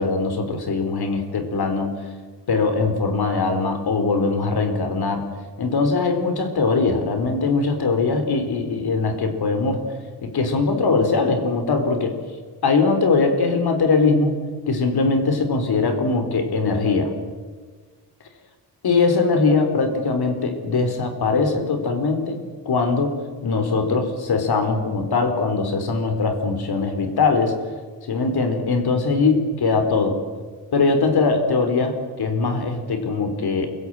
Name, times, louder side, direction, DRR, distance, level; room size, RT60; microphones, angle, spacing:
voice 1, 0.0-1.9 2.5-5.3 5.6-9.8 10.2-12.1 12.6-14.4 14.7-17.1 18.8-22.4 22.7-23.2 23.4-27.6 28.1-30.2 30.7-33.7, left 4 dB, 60° left, 6 dB, 4.1 m, -21 dB
28.5 x 16.5 x 9.2 m, 1.5 s
wide cardioid pair, 170°, 42 cm